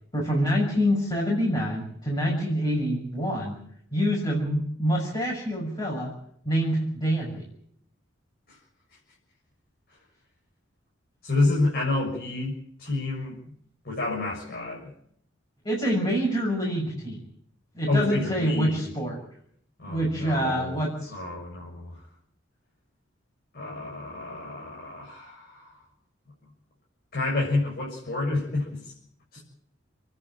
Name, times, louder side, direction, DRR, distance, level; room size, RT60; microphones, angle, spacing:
voice 1, 0.1-3.6 3.9-6.1 6.4-7.4 15.6-17.2 17.7-19.2 19.9-21.1, equal, 25° left, -3 dB, 6.4 m, -26 dB
voice 2, 11.2-12.5 12.8-13.4 13.8-14.9 17.9-18.8 19.8-20.8 21.1-22.0 23.5-25.7 27.1-28.9 29.3-29.4, left 2 dB, 50° left, -3 dB, 6.9 m, -29 dB
29.5 x 11.0 x 9.0 m, 0.68 s
head